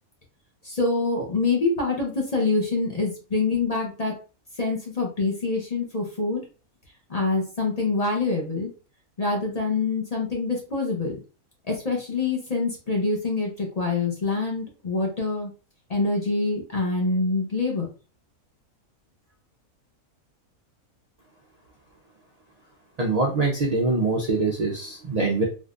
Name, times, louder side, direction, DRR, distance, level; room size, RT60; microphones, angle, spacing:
voice 1, 0.6-4.1 4.6-6.4 7.1-8.7 9.2-11.2 11.7-15.5 15.9-17.9, left 3 dB, 35° left, -1 dB, 0.6 m, -25 dB
voice 2, 23.0-25.4, right 3 dB, 75° right, 0 dB, 0.3 m, -24 dB
3.6 x 2.5 x 2.4 m, 0.34 s
omnidirectional pair, 1.5 m